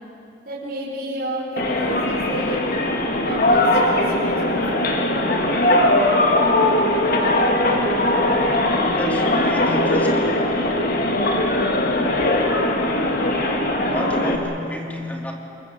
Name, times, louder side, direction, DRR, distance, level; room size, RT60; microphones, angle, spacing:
voice 1, 0.4-2.7 3.2-5.9, right 1 dB, 50° right, -7 dB, 5.4 m, -31 dB
sound 1, 1.6-14.4, left 1 dB, 50° left, 2.3 m, -20 dB
voice 2, 8.8-10.4 13.8-15.3, left 1 dB, 10° left, 1 dB, 2.7 m, -31 dB
28.0 x 21.5 x 7.6 m, 2.8 s
head